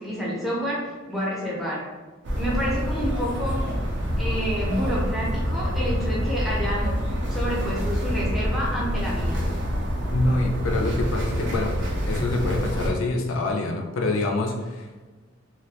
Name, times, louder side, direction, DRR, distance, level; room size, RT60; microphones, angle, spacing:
voice 1, 0.0-1.8 2.4-3.6 4.2-7.0 7.3-9.5, equal, ahead, -6 dB, 0.6 m, -29 dB
sound 1, 2.2-12.9, equal, 60° right, 0.5 m, -26 dB
voice 2, 10.1-11.8 12.1-14.9, left 2 dB, 65° left, 2 dB, 0.4 m, -26 dB
2.3 x 2.1 x 2.7 m, 1.3 s
head